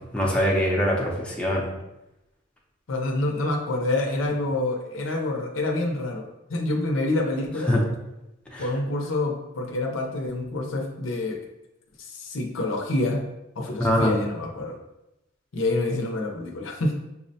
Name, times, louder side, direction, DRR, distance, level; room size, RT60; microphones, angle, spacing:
voice 1, 0.1-1.6 7.7-7.8 8.5-8.7 13.8-14.2, equal, 5° left, -3 dB, 0.5 m, -23 dB
voice 2, 2.9-7.7 8.6-11.4 12.0-13.2 13.6-14.7 15.5-16.9, left 2 dB, 70° left, 1 dB, 0.6 m, -27 dB
5.6 x 2.1 x 2.7 m, 0.92 s
head